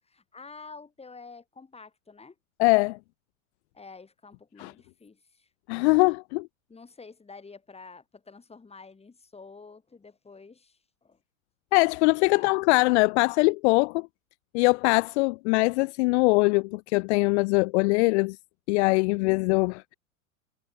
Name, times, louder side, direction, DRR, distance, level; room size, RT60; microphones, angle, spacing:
voice 1, 0.0-2.4 3.7-5.5 6.7-11.2 12.3-12.5 19.1-19.3, left 4 dB, 15° left, 7.0 m, -49 dB
voice 2, 2.6-3.0 4.6-4.7 5.7-6.5 11.7-14.1 14.5-18.4 18.7-19.9, left 27 dB, 55° left, 0.6 m, -22 dB
hypercardioid pair, 100°, 40 cm